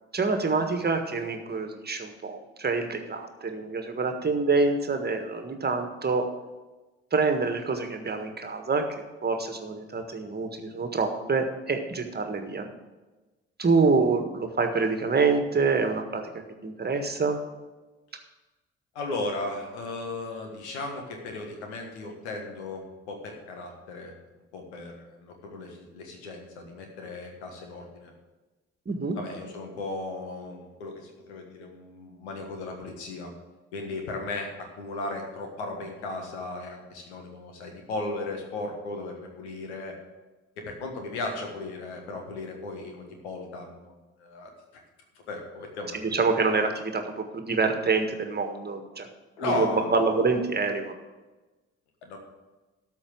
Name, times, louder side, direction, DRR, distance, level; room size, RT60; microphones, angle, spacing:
voice 1, 0.1-6.3 7.1-12.7 13.6-17.4 28.8-29.2 45.9-49.1 49.4-50.9, right 4 dB, 30° right, 5 dB, 1.6 m, -26 dB
voice 2, 18.9-24.1 24.5-28.1 29.1-33.3 33.7-40.0 40.6-44.8 45.3-46.0 49.4-50.1 52.0-52.2, left 2 dB, 80° left, 3 dB, 1.6 m, -36 dB
13.0 x 4.5 x 7.6 m, 1.2 s
hypercardioid pair, 45°, 33 cm